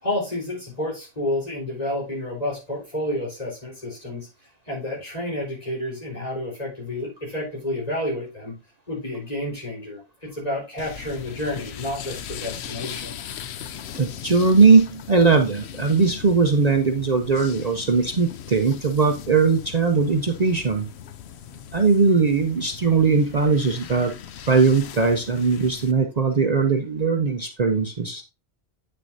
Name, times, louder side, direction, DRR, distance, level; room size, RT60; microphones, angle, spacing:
voice 1, 0.0-4.3 4.7-8.6 8.9-13.2, left 1 dB, 40° left, -4 dB, 4.2 m, -30 dB
sound 1, 10.8-25.9, left 9 dB, 80° left, 0.9 m, -39 dB
voice 2, 13.9-20.9 21.7-24.1 24.4-28.2, right 4 dB, 45° right, 4 dB, 0.8 m, -19 dB
8.7 x 6.7 x 2.6 m, 0.28 s
omnidirectional pair, 1.1 m